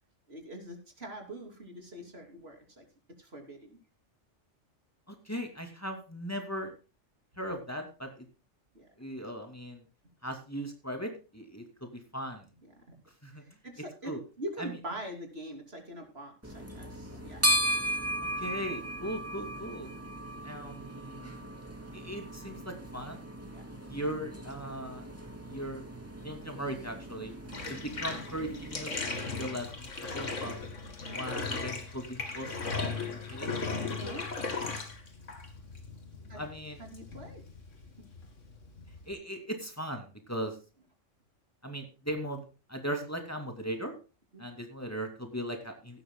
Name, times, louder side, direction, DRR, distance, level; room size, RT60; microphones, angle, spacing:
voice 1, 0.3-2.8 3.2-3.8 8.7-8.9 12.9-13.0 13.6-17.5 23.5-23.6 24.9-25.0 33.9-34.6 36.3-36.4 36.8-37.4 44.3-44.4, right 1 dB, 55° right, 3 dB, 3.3 m, -43 dB
voice 2, 5.1-6.7 7.4-8.3 9.0-9.8 10.2-12.5 13.2-13.4 14.0-14.2 14.6-14.8 18.4-19.9 20.4-21.4 21.9-23.2 23.9-25.1 25.5-25.9 26.2-27.3 27.7-30.6 31.1-33.7 36.3-36.8 39.1-40.6 41.6-43.9 44.4-46.0, equal, 10° left, 4 dB, 2.5 m, -38 dB
sound 1, 16.4-28.9, equal, 10° right, 2.8 m, -36 dB
Bathtub (filling or washing), 27.5-39.1, left 4 dB, 90° left, 2.6 m, -37 dB
17.0 x 12.0 x 2.2 m, 0.32 s
omnidirectional pair, 1.2 m